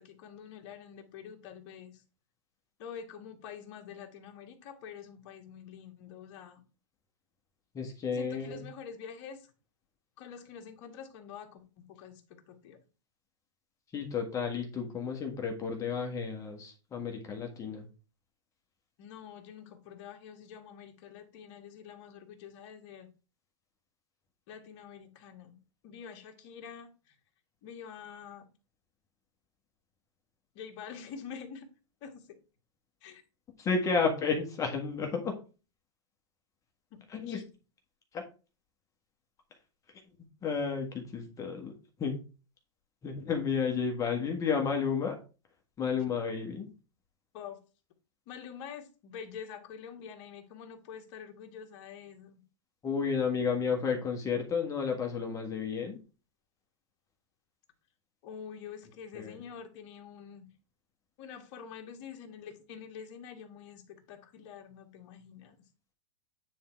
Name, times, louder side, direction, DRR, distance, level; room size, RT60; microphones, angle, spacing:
voice 1, 0.0-2.0 2.8-6.6 8.1-9.5 10.2-12.8 19.0-23.1 24.5-25.6 25.8-27.2 27.6-28.4 30.6-31.7 32.0-32.4 33.0-33.2 36.9-37.4 46.0-46.1 47.3-47.6 48.3-52.4 58.2-60.5 61.2-65.6, left 7 dB, 45° left, 1.8 m, -46 dB
voice 2, 7.7-8.6 13.9-17.9 33.6-35.3 37.1-37.4 38.1-38.2 40.4-41.7 42.0-42.2 43.0-45.2 45.8-46.7 52.8-56.0 59.1-59.4, left 5 dB, 20° left, 1.4 m, -32 dB
9.3 x 3.7 x 4.5 m
hypercardioid pair, 135°, 16 cm